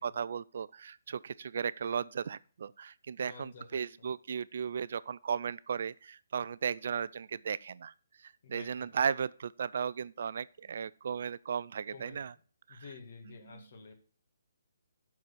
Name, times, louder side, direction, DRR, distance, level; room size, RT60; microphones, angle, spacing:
voice 1, 0.0-7.9 8.2-12.3 12.7-12.9 13.2-13.7, right 7 dB, 55° right, 0.4 m, -36 dB
voice 2, 3.2-4.1 8.4-8.9 11.9-12.3 12.7-13.9, left 4 dB, 55° left, 1.8 m, -50 dB
7.6 x 6.0 x 6.8 m
figure-of-eight pair, 135°, 0 cm